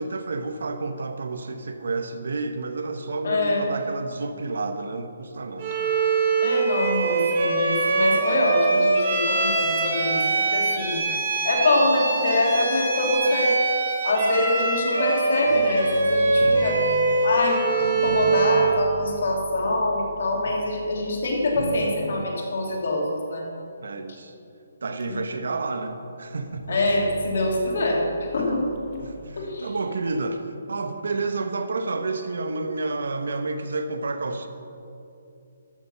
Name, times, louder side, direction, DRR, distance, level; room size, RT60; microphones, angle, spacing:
voice 1, 0.0-5.7 20.5-20.7 23.8-24.3 24.8-26.8 28.4-28.7 29.0-34.5, right 3 dB, 75° right, 8 dB, 1.0 m, -30 dB
voice 2, 3.2-3.7 6.4-10.2 10.5-11.0 11.4-13.5 14.0-16.8 17.2-23.4 25.1-25.2 26.7-28.0 28.3-28.6 29.4-29.7, left 2 dB, 60° left, -1 dB, 2.7 m, -24 dB
Bowed string instrument, 5.6-18.8, right 3 dB, 35° right, 3.0 m, -23 dB
sound 1, 15.5-22.5 25.0-25.1 26.4-29.3, equal, 35° left, 1.8 m, -39 dB
13.5 x 6.7 x 5.7 m, 2.6 s
hypercardioid pair, 165°, 0 cm